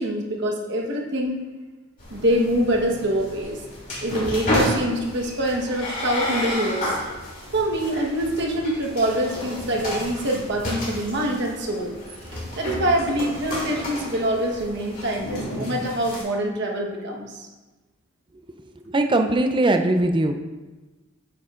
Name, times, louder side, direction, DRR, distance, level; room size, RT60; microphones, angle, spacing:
voice 1, 0.0-1.4 2.1-3.6 4.0-6.9 7.5-12.0 12.6-17.5, right 1 dB, 55° right, 0 dB, 1.2 m, -25 dB
sound 1, 2.0-16.2, left 1 dB, 40° left, 2.8 m, -31 dB
voice 2, 18.9-20.3, right 2 dB, 25° right, 6 dB, 0.5 m, -20 dB
8.9 x 8.6 x 2.5 m, 1.2 s
head